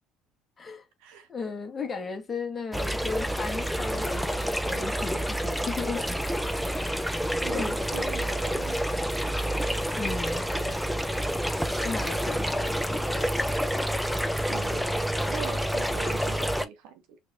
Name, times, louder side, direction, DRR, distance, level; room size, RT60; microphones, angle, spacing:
voice 1, 1.3-6.4 6.7-7.0 7.5-7.8 10.0-10.5 11.8-13.6, left 4 dB, 30° left, 1.4 m, -36 dB
sound 1, 2.7-16.6, equal, ahead, 0.7 m, -28 dB
voice 2, 7.4-8.8 10.6-10.8 14.5-17.2, right 8 dB, 65° right, 1.0 m, -41 dB
5.1 x 3.3 x 2.5 m
hypercardioid pair, 60°, 0 cm